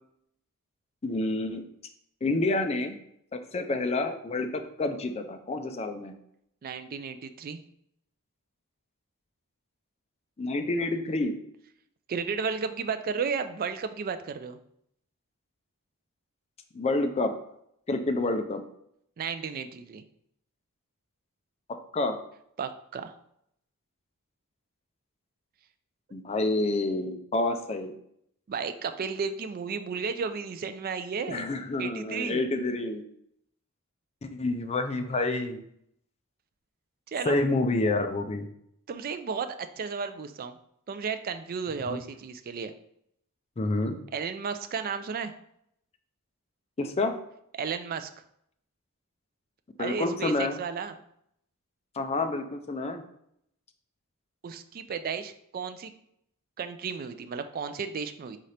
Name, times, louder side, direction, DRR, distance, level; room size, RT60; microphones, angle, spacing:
voice 1, 1.0-1.6 2.2-3.0 3.3-6.1 10.4-11.3 16.7-17.3 17.9-18.6 21.7-22.2 26.1-27.9 31.3-33.0 34.3-35.6 37.3-38.5 41.9-42.0 43.6-44.0 46.8-47.2 49.8-50.6 52.0-53.0, left 2 dB, 30° left, 7 dB, 0.4 m, -28 dB
voice 2, 6.6-7.6 12.1-14.6 19.2-20.0 22.6-23.1 28.5-31.5 31.8-32.4 37.1-37.4 38.9-40.5 40.9-42.7 44.1-45.3 47.6-48.1 49.8-51.0 54.4-55.9 56.6-58.4, right 5 dB, 40° right, 9 dB, 0.3 m, -33 dB
4.1 x 3.7 x 3.3 m, 0.73 s
head